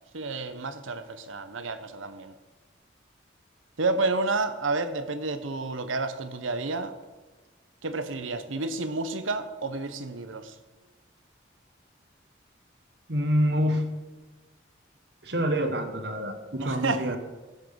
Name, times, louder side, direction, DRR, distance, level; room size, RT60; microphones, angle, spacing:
voice 1, 0.1-2.3 3.8-6.9 7.8-10.5 16.6-17.2, right 3 dB, 90° right, 11 dB, 1.0 m, -30 dB
voice 2, 13.1-13.9 15.2-17.2, equal, 60° right, 7 dB, 1.3 m, -26 dB
16.0 x 6.2 x 6.9 m, 1.2 s
head